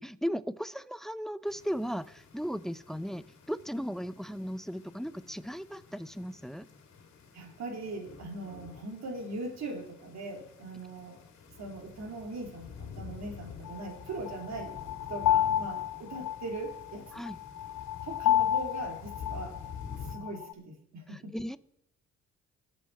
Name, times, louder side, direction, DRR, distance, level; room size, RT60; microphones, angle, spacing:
voice 1, 0.0-6.7 17.1-17.4 21.1-21.6, equal, ahead, 15 dB, 0.5 m, -36 dB
sound 1, 1.5-20.2, left 6 dB, 60° left, 2.5 m, -49 dB
voice 2, 7.3-11.2 11.6-14.8 15.1-17.2 18.0-19.6 20.0-21.4, right 2 dB, 65° right, 2 dB, 3.3 m, -40 dB
sound 2, 13.7-20.5, left 11 dB, 80° left, 0.6 m, -31 dB
20.5 x 7.4 x 4.2 m, 0.79 s
cardioid pair, 90°, 30 cm